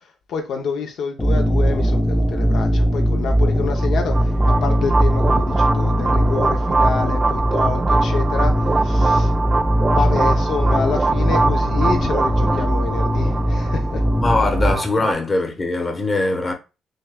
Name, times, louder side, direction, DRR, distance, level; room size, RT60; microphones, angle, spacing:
voice 1, 0.0-9.3 9.9-14.0, left 5 dB, 75° left, 0.6 m, -28 dB
sound 1, 1.2-14.7, equal, 5° left, 0.6 m, -19 dB
sound 2, 3.8-15.1, right 3 dB, 30° right, 0.3 m, -23 dB
voice 2, 14.2-16.5, left 2 dB, 30° left, 0.9 m, -21 dB
6.3 x 2.3 x 2.2 m
cardioid pair, 90°, 0 cm